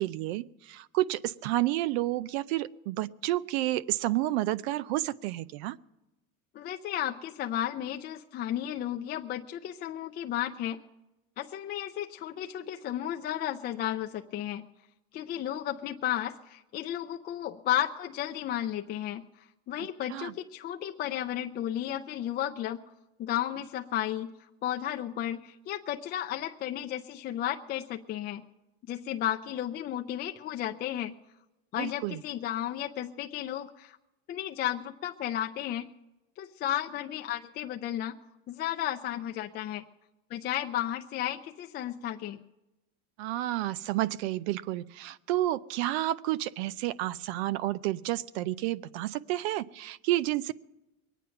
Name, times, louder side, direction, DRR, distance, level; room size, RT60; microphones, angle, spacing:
voice 1, 0.0-5.8 20.1-20.3 31.8-32.2 43.2-50.5, right 15 dB, 85° right, 19 dB, 0.6 m, -30 dB
voice 2, 6.5-10.8 11.4-14.6 15.1-19.2 19.7-22.8 23.2-24.3 24.6-28.4 28.9-31.1 31.7-34.0 34.3-35.9 36.4-38.2 38.5-39.8 40.3-42.4, left 11 dB, 30° left, 4 dB, 0.4 m, -33 dB
22.5 x 9.3 x 5.7 m, 1.0 s
cardioid pair, 150°, 31 cm